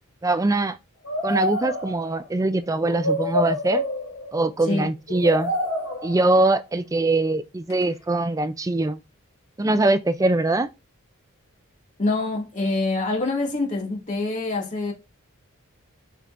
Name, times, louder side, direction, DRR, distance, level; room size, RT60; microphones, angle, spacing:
voice 1, 0.2-0.8 1.2-3.8 4.3-5.5 6.0-9.0 9.6-10.7, right 2 dB, 15° right, 0.4 m, -22 dB
sound 1, 1.1-2.2 2.8-4.5 5.1-6.4 7.7-7.8, left 1 dB, 75° left, 2.5 m, -27 dB
voice 2, 12.0-14.9, left 2 dB, 35° left, 2.1 m, -25 dB
8.1 x 5.7 x 2.5 m
head